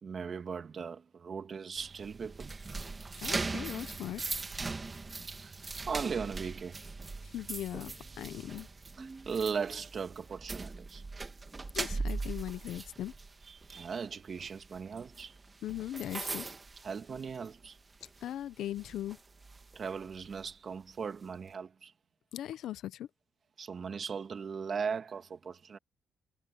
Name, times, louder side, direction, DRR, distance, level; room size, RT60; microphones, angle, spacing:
voice 1, 0.0-2.5 5.3-5.5 5.9-6.8 9.0-11.0 13.5-15.4 16.8-17.8 19.8-21.9 23.6-25.8, right 6 dB, 45° right, 2.1 m, -38 dB
sound 1, 1.8-17.7 18.0-18.3 18.8-20.4, right 3 dB, 25° right, 2.2 m, -40 dB
voice 2, 3.2-4.2 7.2-8.7 11.7-13.1 15.6-16.5 18.2-19.2 22.3-23.1, left 12 dB, 75° left, 0.8 m, -39 dB
cardioid pair, 90°, 0 cm